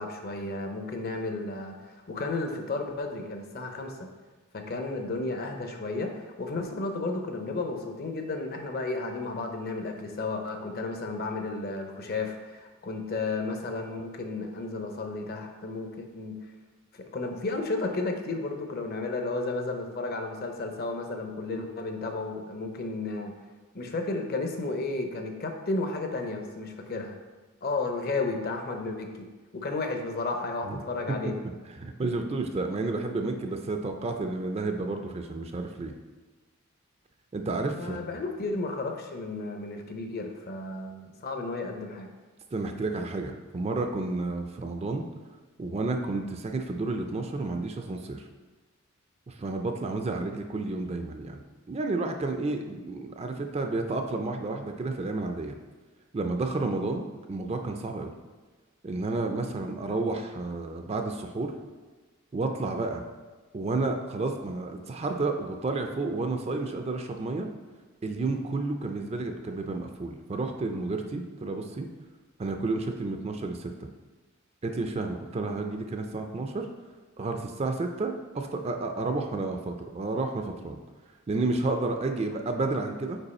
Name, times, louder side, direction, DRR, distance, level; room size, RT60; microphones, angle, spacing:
voice 1, 0.0-4.1 4.5-16.4 16.9-23.3 23.7-27.2 27.6-29.3 29.5-31.3 37.6-42.1, left 3 dB, 45° left, 4 dB, 0.6 m, -33 dB
voice 2, 31.8-35.9 37.3-38.0 42.5-45.0 45.6-48.3 49.3-55.6 56.1-58.1 58.8-61.5 62.3-63.0 63.5-67.5 68.0-71.9 72.4-73.9 74.6-76.7 77.2-80.8 81.3-83.2, right 3 dB, 30° right, 5 dB, 0.4 m, -31 dB
5.3 x 4.4 x 4.2 m, 1.3 s
head